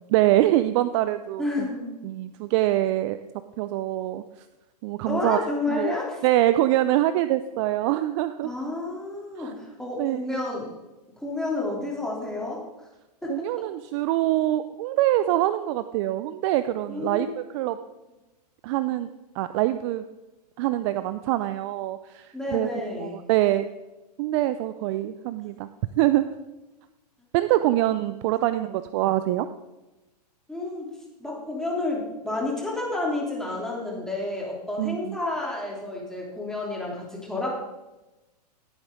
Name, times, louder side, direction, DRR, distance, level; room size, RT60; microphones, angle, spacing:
voice 1, 0.1-1.7 2.0-3.2 3.6-4.5 4.8-5.4 5.7-6.0 6.2-8.5 9.4-9.5 10.0-10.2 13.3-17.8 18.6-19.1 19.3-20.0 20.6-23.7 24.2-25.7 26.0-26.3 27.3-29.5 34.8-35.2, right 14 dB, 45° right, 12 dB, 0.6 m, -24 dB
voice 2, 1.4-1.9 5.0-6.2 8.4-10.7 11.2-12.6 13.2-13.6 16.9-17.3 22.3-23.2 30.5-30.8 31.2-37.6, left 2 dB, 5° left, -3 dB, 3.1 m, -30 dB
17.0 x 9.0 x 3.7 m, 1.1 s
hypercardioid pair, 115°, 21 cm